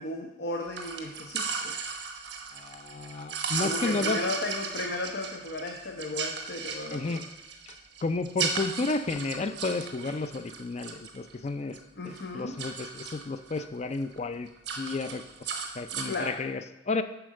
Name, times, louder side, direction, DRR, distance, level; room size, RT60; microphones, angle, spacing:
voice 1, 0.0-1.7 3.6-7.3 12.0-12.6 15.9-16.4, left 2 dB, 70° left, 2 dB, 0.7 m, -35 dB
sound 1, 0.7-11.8 12.1-13.6 14.0-14.2 14.5-16.3, right 5 dB, 90° right, 1.0 m, -36 dB
voice 2, 2.5-4.2 6.9-7.2 7.7-7.8 8.0-11.8 12.0-14.5 14.8-17.0, left 3 dB, 40° left, 11 dB, 0.4 m, -32 dB
7.9 x 4.8 x 6.3 m, 0.92 s
head